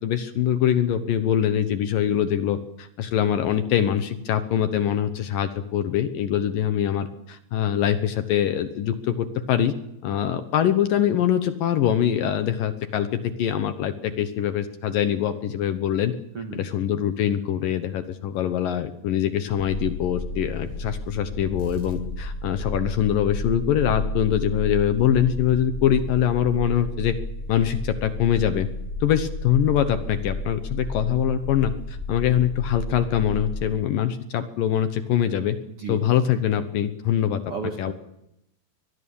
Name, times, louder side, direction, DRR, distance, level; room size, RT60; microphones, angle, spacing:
voice 1, 0.0-9.7 10.0-16.1 16.5-27.2 27.5-28.7 29.0-35.6 35.9-37.4 37.8-37.9, left 10 dB, 70° left, 10 dB, 2.4 m, -23 dB
voice 2, 16.3-16.7 35.7-36.2 37.5-37.9, right 4 dB, 50° right, 4 dB, 2.0 m, -34 dB
sound 1, 19.5-33.7, left 1 dB, 85° left, 8.6 m, -32 dB
24.0 x 19.5 x 7.1 m, 0.83 s
omnidirectional pair, 4.7 m